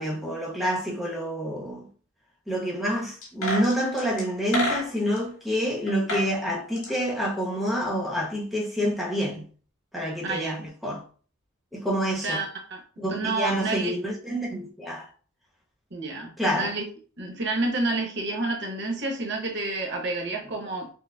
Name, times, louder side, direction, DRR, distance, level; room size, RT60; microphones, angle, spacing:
voice 1, 0.0-1.9 2.5-9.4 9.9-11.0 11.7-12.4 13.0-15.1 16.4-16.7, equal, ahead, 0.9 m, -28 dB
sound 1, 3.2-5.2 5.9-6.3 6.6-8.0 8.2-8.3, left 1 dB, 75° left, 1.8 m, -30 dB
voice 2, 10.2-10.6 12.1-12.8 13.1-13.9 15.9-16.8 17.2-20.9, right 2 dB, 55° right, 0.9 m, -29 dB
6.1 x 2.1 x 2.2 m
head